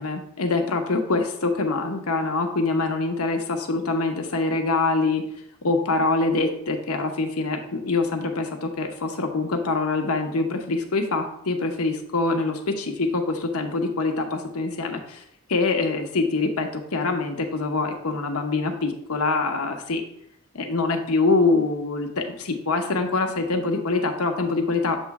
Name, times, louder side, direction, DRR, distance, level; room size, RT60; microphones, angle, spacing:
voice 1, 0.0-5.2 5.6-15.2 15.5-20.0 20.5-25.0, left 3 dB, 85° left, 4 dB, 0.9 m, -24 dB
7.3 x 3.1 x 4.7 m, 0.73 s
head